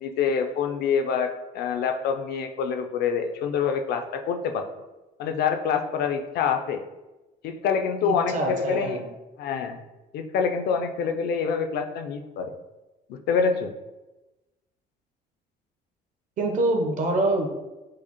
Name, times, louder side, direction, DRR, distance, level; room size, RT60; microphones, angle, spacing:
voice 1, 0.0-4.6 5.2-6.8 7.4-9.0 9.4-9.8 10.1-12.5 13.1-13.7, left 6 dB, 70° left, 6 dB, 0.4 m, -26 dB
voice 2, 8.0-9.1 16.4-17.5, right 2 dB, 50° right, 3 dB, 0.7 m, -25 dB
4.7 x 2.0 x 2.9 m, 1.1 s
cardioid pair, 110°, 17 cm